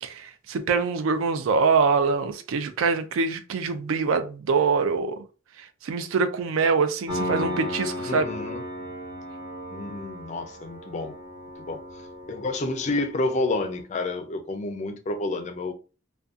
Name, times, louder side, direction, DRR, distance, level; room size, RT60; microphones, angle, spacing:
voice 1, 0.0-5.2 5.6-8.2, right 5 dB, 80° right, 0.4 m, -24 dB
Piano, 7.1-13.8, left 1 dB, 20° right, 0.6 m, -35 dB
voice 2, 8.0-8.6 9.7-11.1 11.7-11.8 12.3-15.7, left 2 dB, 35° left, 0.3 m, -29 dB
2.6 x 2.2 x 2.3 m
head